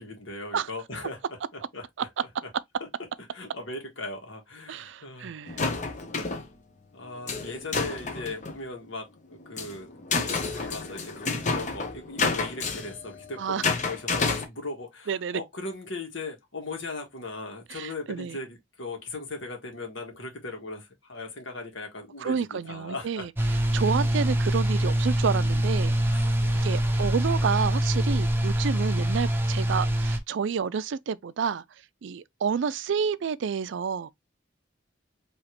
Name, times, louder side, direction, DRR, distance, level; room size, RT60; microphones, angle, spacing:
voice 1, 0.0-2.5 2.8-5.3 6.9-23.3 23.8-23.9 25.8-27.1, left 2 dB, 80° left, 1.7 m, -39 dB
voice 2, 4.7-5.6 13.4-13.6 15.1-15.4 17.7-18.4 22.2-23.3 23.7-25.9 26.6-31.6 32.0-34.1, right 6 dB, 70° right, 0.4 m, -29 dB
sound 1, 5.5-6.5 7.3-8.6 9.3-14.4, left 4 dB, 40° left, 0.9 m, -30 dB
sound 2, 23.4-30.2, right 1 dB, 10° right, 0.7 m, -24 dB
5.0 x 3.0 x 2.9 m
head